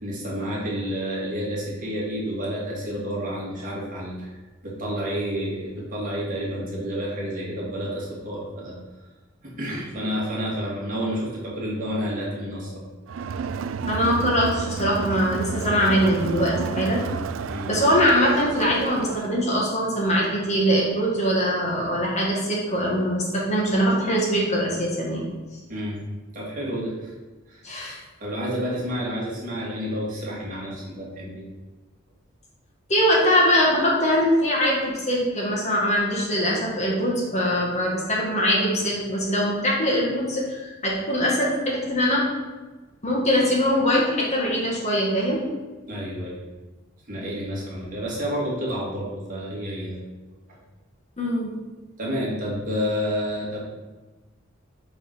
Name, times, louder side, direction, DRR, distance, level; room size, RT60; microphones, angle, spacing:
voice 1, 0.0-4.3 4.6-8.8 9.4-12.8 17.5-17.7 25.7-26.0 26.3-27.1 27.5-27.6 28.2-31.5 45.9-46.4 47.1-50.0 50.5-50.6 52.0-53.6, equal, 40° right, -5 dB, 2.3 m, -30 dB
Crowd, 13.1-19.4, right 5 dB, 70° right, 0.3 m, -30 dB
voice 2, 13.8-17.0 17.7-25.3 27.6-28.0 32.9-42.3 43.0-45.4 51.2-51.5, equal, 35° left, -4 dB, 1.7 m, -22 dB
6.6 x 4.0 x 6.1 m, 1.2 s
head